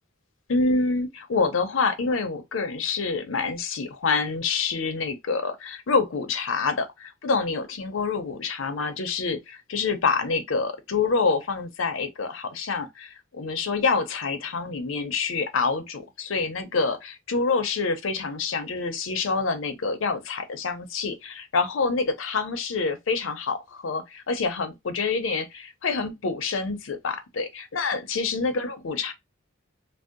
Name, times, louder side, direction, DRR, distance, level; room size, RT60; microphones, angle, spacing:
voice 1, 0.5-29.1, left 4 dB, 80° left, 0.6 m, -27 dB
2.6 x 2.0 x 3.7 m
head